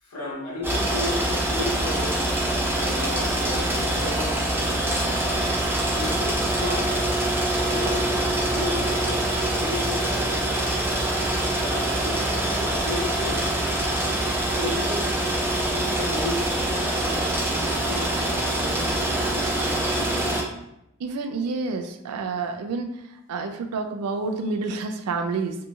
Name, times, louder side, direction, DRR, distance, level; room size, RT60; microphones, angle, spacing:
voice 1, 0.0-2.2 2.7-4.4 5.9-7.1 7.7-10.5 11.6-13.5 14.6-15.1 15.7-20.4, left 2 dB, 85° left, -3 dB, 0.9 m, -34 dB
sound 1, 0.6-20.4, right 1 dB, 10° right, 0.5 m, -24 dB
voice 2, 21.0-23.0 23.3-25.6, right 4 dB, 90° right, 6 dB, 0.4 m, -28 dB
2.7 x 2.7 x 2.3 m, 0.81 s
head